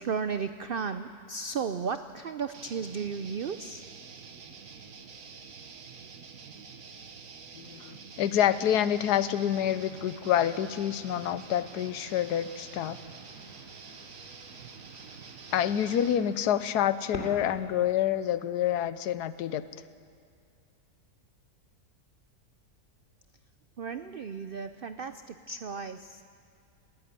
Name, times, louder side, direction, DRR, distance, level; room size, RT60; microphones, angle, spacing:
voice 1, 0.0-3.8 23.8-26.2, right 5 dB, 80° right, 10 dB, 0.5 m, -34 dB
sound 1, 2.5-16.3, right 6 dB, 60° right, 1.5 m, -47 dB
voice 2, 7.5-13.0 15.5-19.6, left 10 dB, 85° left, 14 dB, 1.3 m, -27 dB
sound 2, 8.4-17.4, left 1 dB, 40° left, 2.9 m, -49 dB
19.5 x 14.5 x 9.7 m, 2.4 s
omnidirectional pair, 1.7 m